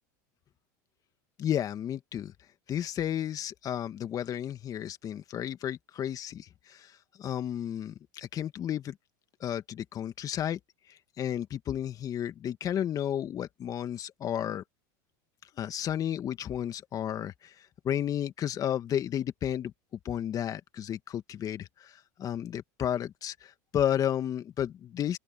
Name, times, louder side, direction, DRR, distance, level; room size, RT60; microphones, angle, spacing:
voice 1, 1.4-2.3 2.7-6.5 7.2-8.9 9.4-10.6 11.2-14.6 15.6-17.3 17.8-19.7 20.1-21.7 22.2-23.3 23.7-25.2, left 10 dB, 40° left, 2.0 m, -32 dB
hypercardioid pair, 100°, 10 cm